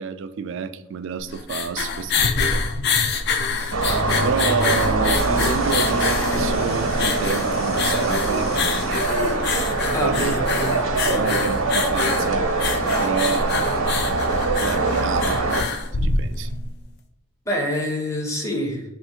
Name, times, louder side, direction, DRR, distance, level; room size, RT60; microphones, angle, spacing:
voice 1, 0.0-2.6 4.2-8.7 10.0-10.4 11.1-12.5 13.0-13.5 14.6-15.4 16.0-16.5, right 5 dB, 60° right, 10 dB, 0.3 m, -29 dB
sound 1, 1.2-16.6, left 4 dB, 50° left, 0.4 m, -26 dB
sound 2, 3.7-15.6, right 3 dB, 85° right, 0.8 m, -23 dB
sound 3, 5.1-9.5, left 3 dB, 70° left, 1.0 m, -37 dB
voice 2, 9.9-10.8 11.1-11.3 17.5-18.8, equal, 15° left, 1 dB, 0.7 m, -26 dB
3.5 x 2.5 x 4.3 m, 0.93 s
head